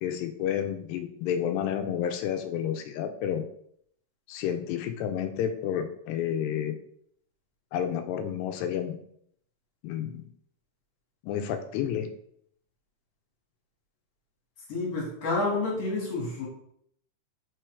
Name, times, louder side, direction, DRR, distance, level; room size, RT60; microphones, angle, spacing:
voice 1, 0.0-3.5 4.3-6.8 7.7-9.0 9.8-10.3 11.2-12.1, left 9 dB, 90° left, 8 dB, 2.8 m, -30 dB
voice 2, 14.7-16.5, left 3 dB, 45° left, -3 dB, 2.8 m, -29 dB
6.2 x 4.6 x 4.7 m, 0.68 s
omnidirectional pair, 4.9 m